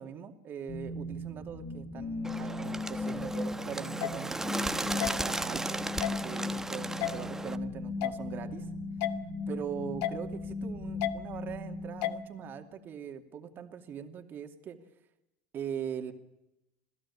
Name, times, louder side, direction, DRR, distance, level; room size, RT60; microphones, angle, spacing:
voice 1, 0.0-5.8 6.1-8.7 9.5-14.8 15.5-16.1, right 8 dB, 45° right, 5 dB, 2.7 m, -41 dB
sound 1, 0.7-12.7, left 2 dB, 35° left, 1.9 m, -38 dB
Bird, 2.2-7.6, right 2 dB, 10° right, 1.2 m, -36 dB
sound 2, 4.0-4.1 5.0-5.1 6.0-6.2 7.0-7.1 8.0-8.2 9.0-9.1 10.0-10.2 11.0-11.1 12.0-12.2, left 14 dB, 70° left, 1.4 m, -31 dB
27.5 x 16.0 x 8.6 m, 0.91 s
supercardioid pair, 100°, 5 cm